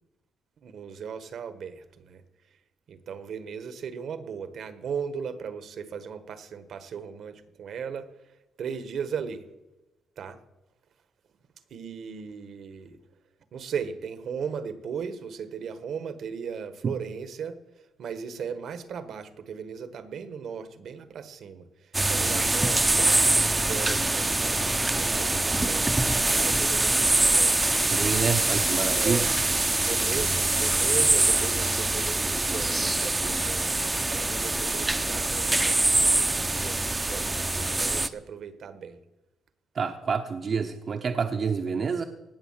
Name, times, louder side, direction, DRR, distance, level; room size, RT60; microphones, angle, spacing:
voice 1, 0.6-2.2 2.9-9.5 10.2-10.4 11.7-13.0 13.5-17.6 18.0-27.6 28.9-29.3 29.8-33.8 34.1-39.0, right 6 dB, 70° right, 11 dB, 1.4 m, -37 dB
sound 1, 21.9-38.1, right 2 dB, 15° right, 0.7 m, -24 dB
voice 2, 27.9-29.2 39.8-42.0, right 5 dB, 50° right, 6 dB, 0.9 m, -28 dB
18.0 x 6.9 x 7.5 m, 1.0 s
cardioid pair, 100°, 0 cm